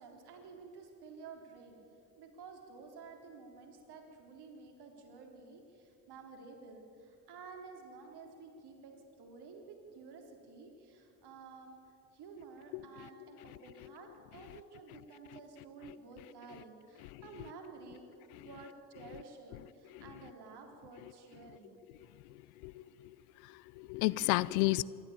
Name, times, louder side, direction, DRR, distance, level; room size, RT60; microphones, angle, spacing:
voice 1, 0.0-1.8 2.2-18.0 18.4-21.8, right 4 dB, 55° right, 3 dB, 4.1 m, -52 dB
voice 2, 23.4-24.8, left 21 dB, 65° left, 20 dB, 0.6 m, -32 dB
26.0 x 13.0 x 8.8 m, 2.9 s
hypercardioid pair, 55°, 46 cm